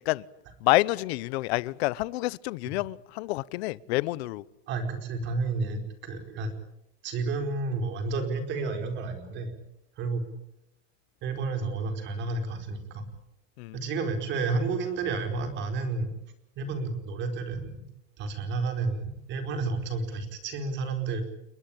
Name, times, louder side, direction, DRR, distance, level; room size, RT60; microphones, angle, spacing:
voice 1, 0.6-4.4 13.6-13.8, left 20 dB, 85° left, 1.0 m, -28 dB
voice 2, 4.7-6.5 7.0-9.5 10.0-10.2 11.2-13.1 13.7-16.1 16.5-17.8 18.2-21.2, right 3 dB, 35° right, 4.8 m, -31 dB
30.0 x 21.5 x 8.9 m
cardioid pair, 175°, 31 cm